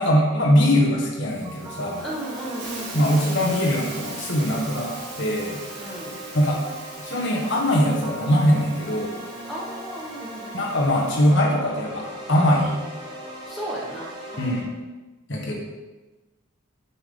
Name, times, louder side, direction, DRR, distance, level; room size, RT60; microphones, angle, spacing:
voice 1, 0.0-2.0 2.9-4.9 5.2-5.6 6.3-6.6 7.0-9.2 10.5-12.8 14.4-14.7 15.3-15.5, equal, 55° left, -2 dB, 1.5 m, -21 dB
Hiss, 1.3-11.3, right 3 dB, 50° right, 2.2 m, -41 dB
sound 1, 1.4-14.6, right 1 dB, 20° right, 1.5 m, -39 dB
voice 2, 2.0-3.3 5.8-6.2 9.5-10.7 13.4-14.6, right 1 dB, ahead, -6 dB, 1.3 m, -35 dB
9.6 x 6.0 x 3.8 m, 1.2 s
head